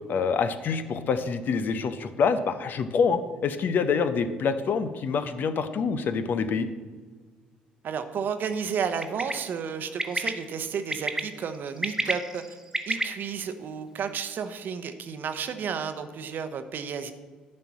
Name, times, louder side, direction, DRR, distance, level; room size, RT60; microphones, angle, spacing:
voice 1, 0.1-6.7, left 5 dB, 55° left, 11 dB, 0.7 m, -26 dB
voice 2, 7.8-12.6 12.9-17.1, right 6 dB, 55° right, 9 dB, 0.8 m, -32 dB
Bird, 9.0-9.3 10.0-10.3 10.9-11.2 11.7-13.0, right 2 dB, 10° right, 1.0 m, -28 dB
10.5 x 4.4 x 7.3 m, 1.4 s
hypercardioid pair, 50°, 4 cm